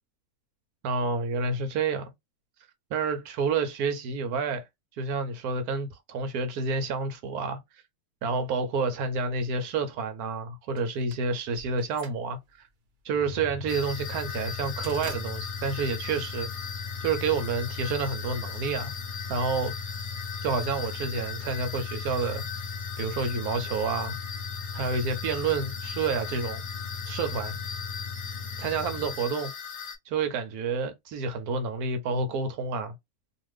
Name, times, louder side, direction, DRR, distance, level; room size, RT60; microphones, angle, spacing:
voice 1, 0.8-2.1 2.9-4.6 5.0-7.6 8.2-12.7 13.0-16.5 17.0-18.9 19.3-19.7 20.4-22.4 23.0-24.2 24.7-26.6 27.1-27.5 28.6-29.5 30.1-32.9, right 4 dB, 80° right, 1.1 m, -29 dB
sound 1, 10.8-16.9, right 5 dB, 55° right, 0.7 m, -48 dB
sound 2, 13.1-29.2, left 4 dB, 85° left, 1.1 m, -38 dB
sound 3, 13.7-30.0, left 6 dB, 55° left, 1.0 m, -39 dB
2.5 x 2.5 x 3.2 m
omnidirectional pair, 1.6 m